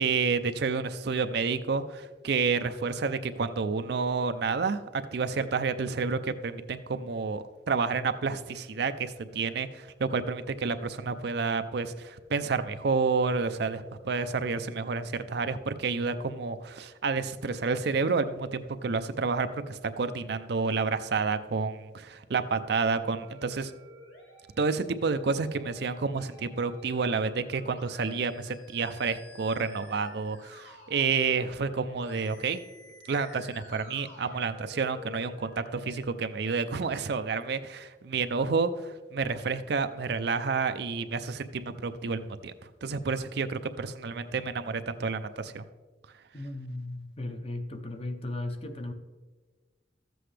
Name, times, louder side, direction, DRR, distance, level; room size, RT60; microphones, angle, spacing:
voice 1, 0.0-23.7 24.6-32.6 33.1-42.5 42.8-45.6, right 4 dB, 55° right, 0.5 m, -30 dB
Musical instrument, 23.0-36.0, left 2 dB, 60° left, 2.5 m, -51 dB
voice 2, 46.3-48.9, left 2 dB, 30° left, 0.7 m, -36 dB
13.5 x 7.8 x 3.3 m
head